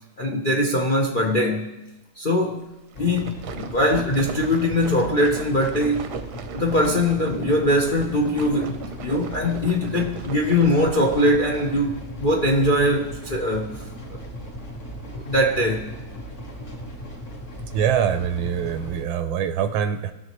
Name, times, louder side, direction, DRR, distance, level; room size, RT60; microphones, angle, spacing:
voice 1, 0.2-1.7 2.2-2.7 3.0-6.0 6.5-13.8 14.1-14.2 15.1-15.9, left 1 dB, 65° left, 0 dB, 0.4 m, -22 dB
sound 1, 2.9-19.0, equal, 40° left, 1.4 m, -37 dB
sound 2, 2.9-11.8, right 7 dB, 65° right, 1.1 m, -37 dB
voice 2, 17.7-20.1, right 8 dB, 80° right, 9 dB, 1.5 m, -24 dB
20.0 x 6.7 x 3.0 m, 0.99 s
omnidirectional pair, 2.2 m